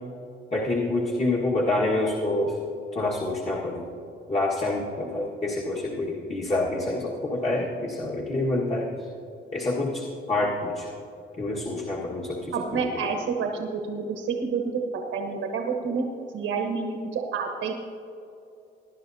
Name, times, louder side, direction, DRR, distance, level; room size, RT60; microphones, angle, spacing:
voice 1, 0.5-2.6 2.9-3.9 4.3-8.9 9.5-10.9 11.4-12.9, left 2 dB, 35° left, -4 dB, 1.7 m, -27 dB
voice 2, 12.5-16.1 16.3-17.7, right 5 dB, 80° right, 2 dB, 1.2 m, -29 dB
19.5 x 10.5 x 2.8 m, 2.7 s
cardioid pair, 90°, 20 cm